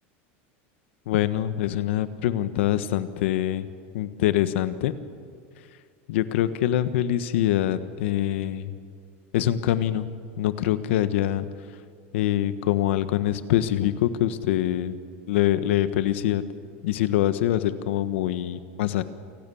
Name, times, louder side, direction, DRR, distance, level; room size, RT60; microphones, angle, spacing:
voice 1, 1.1-3.7 3.9-4.9 6.1-8.7 9.3-11.4 12.1-14.9 15.3-16.4 16.8-19.0, left 12 dB, 80° left, 12 dB, 1.4 m, -24 dB
28.5 x 19.0 x 7.2 m, 2.2 s
supercardioid pair, 160°, 6 cm